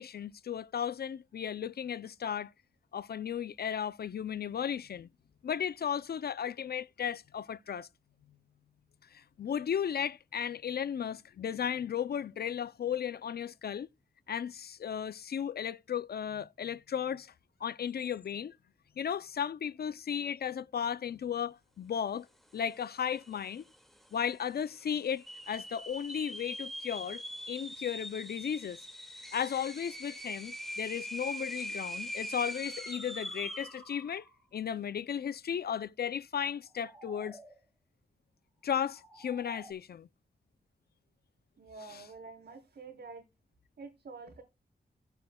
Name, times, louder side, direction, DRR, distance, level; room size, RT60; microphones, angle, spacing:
voice 1, 0.0-2.5 2.9-5.1 5.4-7.9 9.1-13.9 14.3-17.3 17.6-18.6 19.0-22.3 22.5-23.6 24.1-28.8 29.3-34.3 34.5-37.4 38.6-40.1 41.8-42.1, left 8 dB, 65° left, 0.4 m, -35 dB
sound 1, 22.9-23.0 23.2-23.7 24.2-24.3 25.1-33.8, equal, ahead, 2.0 m, -42 dB
sound 2, 31.3-31.4 32.2-34.5 36.4-37.6 38.6-39.7, right 1 dB, 15° right, 3.9 m, -54 dB
voice 2, 41.6-43.2 43.8-44.4, right 4 dB, 80° right, 3.7 m, -48 dB
16.0 x 8.8 x 2.2 m
wide cardioid pair, 160°, 18 cm